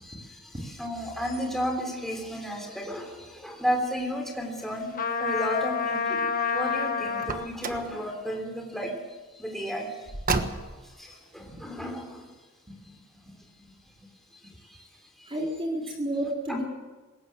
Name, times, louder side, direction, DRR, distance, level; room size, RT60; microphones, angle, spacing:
voice 1, 0.0-4.9 5.2-6.3 6.5-8.9 9.4-9.9 11.0-12.3 14.7-14.8 15.2-15.3, equal, ahead, 1 dB, 3.5 m, -33 dB
Trumpet, 4.9-7.5, left 5 dB, 40° left, 1.5 m, -28 dB
Car, 7.2-7.9 10.1-10.9, right 3 dB, 40° right, 1.3 m, -30 dB
voice 2, 12.7-13.4 14.0-14.1 15.3-16.6, right 1 dB, 25° right, -2 dB, 4.5 m, -33 dB
20.5 x 18.5 x 7.7 m, 1.2 s
head